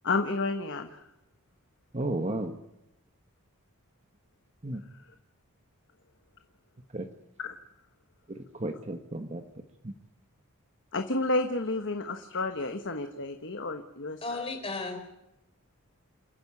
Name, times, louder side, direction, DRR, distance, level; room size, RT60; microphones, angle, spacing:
voice 1, 0.0-1.0 7.4-7.5 10.9-14.4, left 2 dB, 55° left, 7 dB, 1.3 m, -31 dB
voice 2, 1.9-2.6 4.6-4.8 6.9-7.1 8.3-9.4 9.8-9.9, right 1 dB, 30° right, 6 dB, 1.2 m, -33 dB
voice 3, 14.2-15.0, left 3 dB, 25° left, 4 dB, 4.1 m, -34 dB
28.5 x 10.5 x 9.6 m, 0.87 s
head